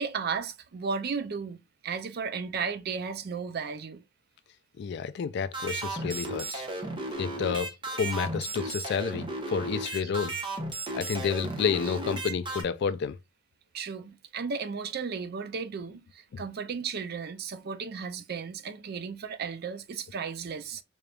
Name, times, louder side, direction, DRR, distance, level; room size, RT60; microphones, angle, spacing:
voice 1, 0.0-4.0 8.6-8.7 10.0-10.1 11.8-12.0 13.7-20.8, right 5 dB, 50° right, 0.4 m, -35 dB
voice 2, 4.8-6.6 7.2-10.4 10.9-13.2, left 6 dB, 55° left, 0.3 m, -30 dB
sound 1, 5.5-12.6, right 2 dB, 25° right, 0.8 m, -35 dB
3.8 x 3.4 x 2.3 m
head